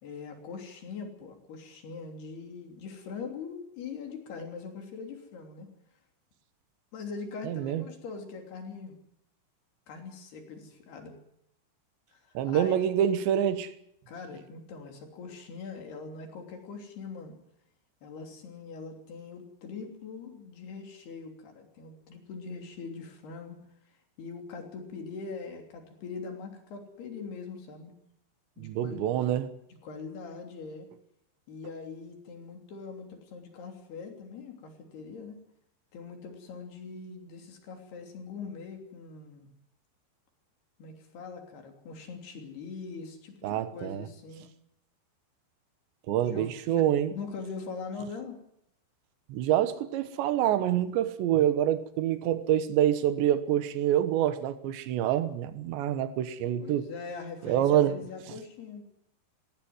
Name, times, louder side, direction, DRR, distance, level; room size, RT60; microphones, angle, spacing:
voice 1, 0.0-5.7 6.9-8.9 9.9-11.2 12.1-12.7 14.1-17.4 18.0-23.6 24.2-27.9 28.6-29.1 29.8-30.9 31.5-35.4 35.9-39.5 40.8-44.5 46.2-48.4 56.6-58.8, left 5 dB, 60° left, 5.0 m, -42 dB
voice 2, 7.4-7.9 12.3-13.7 28.6-29.5 43.4-44.1 46.1-47.1 49.3-56.9 57.4-58.0, right 11 dB, 75° right, 3.4 m, -26 dB
19.5 x 16.0 x 9.5 m
omnidirectional pair, 5.3 m